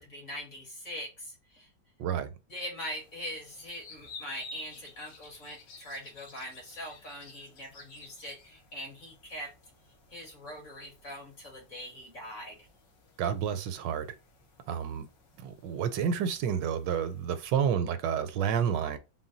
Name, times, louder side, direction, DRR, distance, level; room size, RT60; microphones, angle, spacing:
voice 1, 0.1-1.7 2.5-9.5 10.1-12.7, equal, 45° left, 1.9 m, -42 dB
voice 2, 2.0-2.3 13.2-14.1 14.7-15.1 15.4-19.0, right 8 dB, 80° right, 1.2 m, -30 dB
sound 1, 2.8-17.5, left 3 dB, 75° left, 1.6 m, -53 dB
3.9 x 2.2 x 3.7 m
omnidirectional pair, 1.9 m